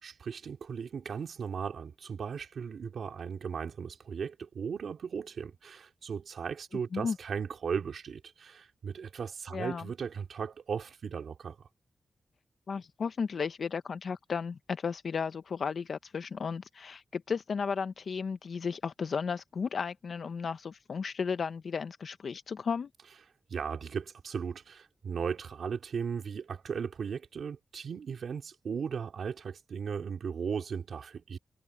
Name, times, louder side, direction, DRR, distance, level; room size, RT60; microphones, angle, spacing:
voice 1, 0.0-11.7 23.5-31.4, right 6 dB, 85° right, 2.9 m, -37 dB
voice 2, 9.5-9.8 12.7-22.9, left 6 dB, 75° left, 0.5 m, -34 dB
cardioid pair, 75°, 0 cm